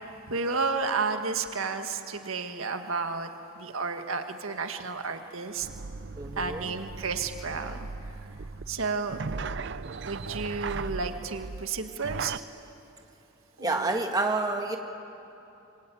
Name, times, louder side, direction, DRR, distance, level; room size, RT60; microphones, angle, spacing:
voice 1, 0.3-3.3 3.6-5.7 6.4-7.8 8.7-9.4 10.1-12.4 13.6-14.0, right 4 dB, 80° right, 6 dB, 1.7 m, -32 dB
sound 1, 5.6-12.4, right 4 dB, 55° right, 0.6 m, -38 dB
voice 2, 6.2-6.7 13.6-14.8, right 2 dB, 20° right, 3 dB, 1.7 m, -28 dB
25.5 x 24.0 x 9.3 m, 2.8 s
head